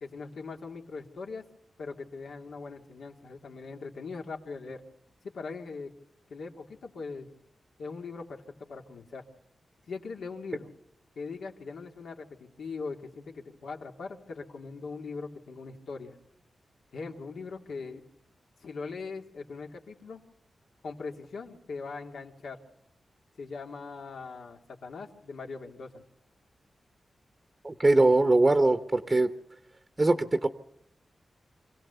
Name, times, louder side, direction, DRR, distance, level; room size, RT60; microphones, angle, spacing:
voice 1, 0.0-1.4 1.8-4.8 5.2-5.9 6.3-7.3 7.8-9.2 9.9-10.7 11.2-16.2 16.9-18.0 18.6-20.2 20.8-22.6 23.4-26.0, left 4 dB, 90° left, 2 dB, 2.3 m, -40 dB
voice 2, 27.6-29.3 30.0-30.5, right 2 dB, 25° right, 9 dB, 0.8 m, -22 dB
25.5 x 16.5 x 6.8 m, 0.81 s
wide cardioid pair, 130°, 0 cm